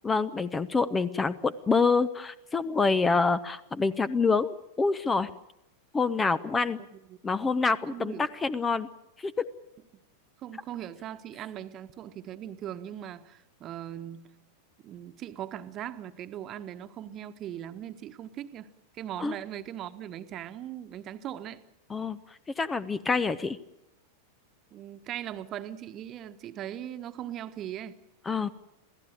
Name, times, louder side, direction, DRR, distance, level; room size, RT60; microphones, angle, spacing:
voice 1, 0.0-5.3 5.9-6.8 7.2-8.9 9.2-9.5 19.2-19.4 21.9-23.6 28.3-28.5, left 4 dB, 15° left, 15 dB, 0.8 m, -27 dB
voice 2, 7.9-8.3 10.4-14.3 14.8-18.7 18.9-21.6 24.7-27.9, right 11 dB, 30° right, 10 dB, 1.4 m, -39 dB
27.0 x 16.5 x 8.8 m, 0.89 s
figure-of-eight pair, 90°, 0 cm